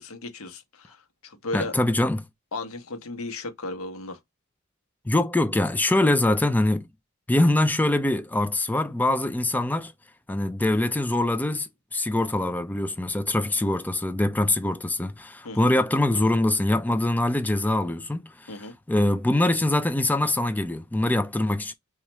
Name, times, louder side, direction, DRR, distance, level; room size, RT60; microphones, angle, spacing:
voice 1, 0.0-1.7 2.5-4.2 15.4-15.7 18.5-18.7, left 2 dB, 80° left, 0.8 m, -35 dB
voice 2, 1.5-2.2 5.1-6.9 7.3-9.9 10.3-21.7, left 1 dB, 10° left, 0.3 m, -24 dB
3.0 x 2.4 x 4.3 m
head